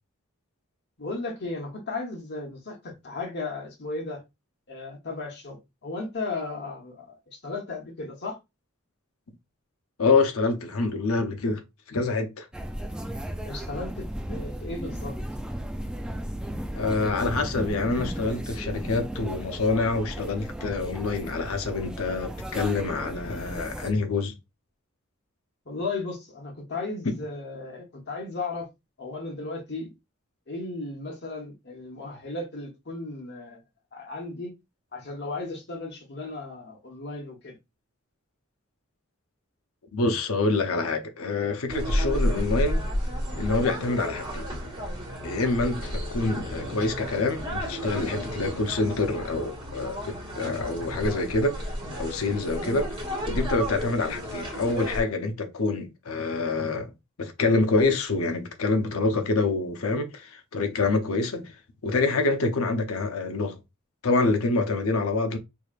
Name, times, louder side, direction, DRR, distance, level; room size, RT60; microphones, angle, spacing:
voice 1, 1.0-4.2 4.7-5.6 5.8-8.4 13.4-15.2 25.6-28.7 29.0-29.9 30.5-33.6 33.9-34.5 34.9-37.6, left 3 dB, 55° left, 1.2 m, -35 dB
voice 2, 10.0-11.6 11.9-12.5 16.7-24.3 39.9-42.8 43.4-44.5 45.2-51.6 52.0-52.9 53.3-56.9 57.2-61.5 61.8-63.6 64.0-65.4, left 3 dB, 85° left, 0.8 m, -26 dB
sound 1, 12.5-23.9, right 1 dB, 5° right, 0.4 m, -35 dB
sound 2, 41.7-55.0, equal, 25° right, 1.5 m, -32 dB
4.8 x 2.8 x 2.4 m
head